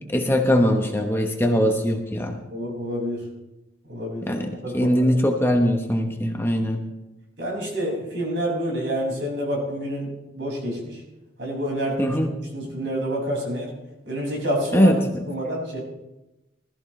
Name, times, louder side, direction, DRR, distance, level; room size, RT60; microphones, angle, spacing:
voice 1, 0.0-2.4 4.2-6.9 12.0-12.4 14.7-15.1, equal, 10° left, 3 dB, 1.0 m, -21 dB
voice 2, 2.5-3.2 3.8-4.3 4.6-5.1 7.4-11.0 11.4-12.2 12.5-13.7 14.0-14.9 15.3-15.8, equal, 70° right, -2 dB, 6.0 m, -28 dB
19.5 x 13.5 x 3.3 m, 0.99 s
head